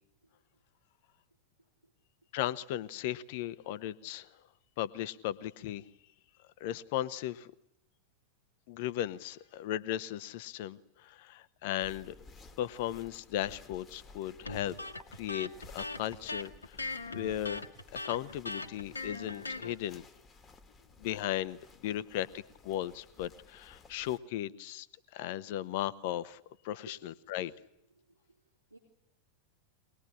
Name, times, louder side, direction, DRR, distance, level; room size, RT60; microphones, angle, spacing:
voice 1, 1.6-1.9 26.8-27.5 27.9-28.8, right 2 dB, 85° right, 1 dB, 3.7 m, -58 dB
voice 2, 2.3-4.3 4.8-5.9 6.6-7.5 8.7-12.1 12.6-14.8 15.1-20.0 21.0-24.9 25.1-26.9 27.3-27.5, left 12 dB, 50° left, 15 dB, 1.1 m, -36 dB
sound 1, 11.8-24.2, left 3 dB, 20° left, 1.9 m, -56 dB
Electric guitar, 14.5-19.7, left 2 dB, 75° left, 1.6 m, -40 dB
23.5 x 20.0 x 10.0 m, 0.83 s
figure-of-eight pair, 90°, 0 cm